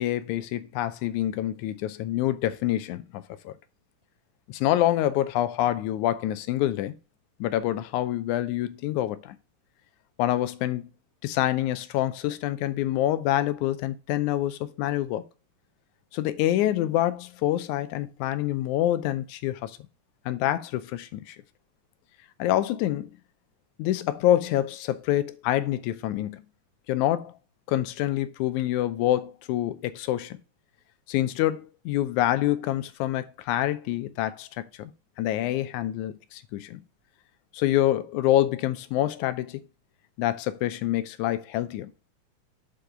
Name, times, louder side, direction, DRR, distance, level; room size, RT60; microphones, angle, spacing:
voice 1, 0.0-3.6 4.5-7.0 7.4-9.4 10.2-10.9 11.2-15.3 16.1-19.8 20.3-21.4 22.4-23.1 23.8-26.4 26.9-27.3 27.7-30.4 31.1-34.9 35.2-36.8 37.5-39.6 40.2-41.9, left 13 dB, 90° left, 2.0 m, -26 dB
6.9 x 4.7 x 3.6 m
omnidirectional pair, 3.4 m